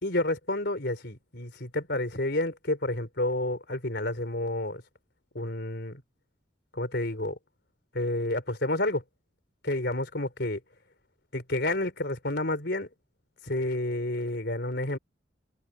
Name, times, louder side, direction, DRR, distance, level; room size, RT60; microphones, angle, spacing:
voice 1, 0.0-4.8 5.3-6.0 6.7-7.4 7.9-9.0 9.6-10.6 11.3-12.9 13.4-15.0, left 1 dB, 60° left, 4.4 m, -30 dB
open air
head